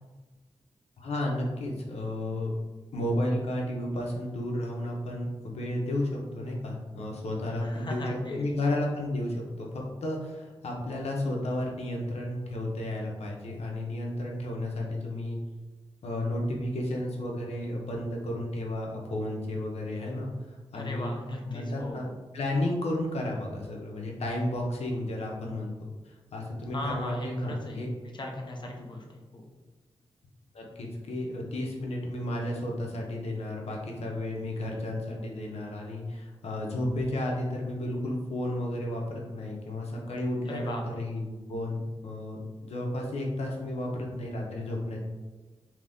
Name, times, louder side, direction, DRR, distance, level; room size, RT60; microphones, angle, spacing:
voice 1, 1.0-2.5 2.9-15.4 16.0-20.3 20.7-22.1 22.3-25.7 26.0-27.9 30.5-45.0, left 1 dB, 85° left, -1 dB, 0.7 m, -32 dB
voice 2, 7.6-8.5 20.7-22.1 26.7-27.9 28.2-29.5 40.5-40.8, left 1 dB, 45° left, 1 dB, 0.6 m, -38 dB
2.8 x 2.6 x 3.4 m, 1.3 s
wide cardioid pair, 100°, 11 cm